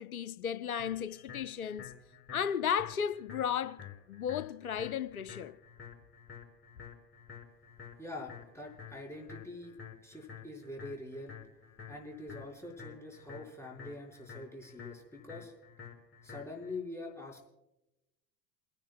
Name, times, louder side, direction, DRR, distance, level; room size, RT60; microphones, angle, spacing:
voice 1, 0.0-1.9 2.3-5.5, left 8 dB, 90° left, 0.6 m, -34 dB
sound 1, 0.8-16.8, left 7 dB, 30° left, 5.8 m, -50 dB
voice 2, 8.0-9.8 10.0-11.4 11.9-15.5 16.2-17.4, left 2 dB, 5° left, 5.5 m, -44 dB
28.5 x 11.0 x 2.3 m
figure-of-eight pair, 70°, 42 cm